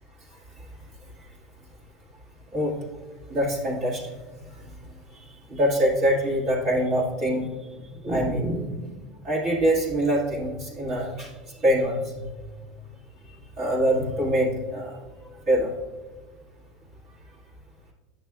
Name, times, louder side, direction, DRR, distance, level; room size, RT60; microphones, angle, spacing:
voice 1, 3.3-4.1 4.5-4.7 5.1-7.5 7.9-9.0 9.2-11.3 11.6-12.3 13.3-15.7, equal, 50° right, -4 dB, 1.7 m, -25 dB
8.4 x 6.0 x 2.3 m, 1.3 s
supercardioid pair, 105°, 0 cm